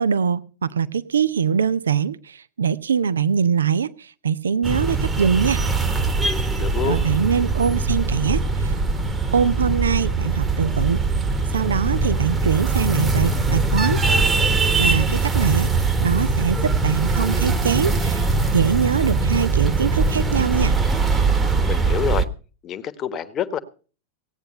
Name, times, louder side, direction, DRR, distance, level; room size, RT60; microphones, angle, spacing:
voice 1, 0.0-5.6 6.8-8.8 9.3-11.0 11.5-14.0 14.8-15.7 16.0-18.2 18.5-20.8, right 6 dB, 70° right, 0.6 m, -22 dB
sound 1, 4.6-22.3, right 3 dB, 15° right, 1.3 m, -21 dB
voice 2, 6.6-7.0 21.6-22.3 22.6-23.6, left 8 dB, 30° left, 1.2 m, -27 dB
17.0 x 9.0 x 5.3 m
figure-of-eight pair, 90°, 0 cm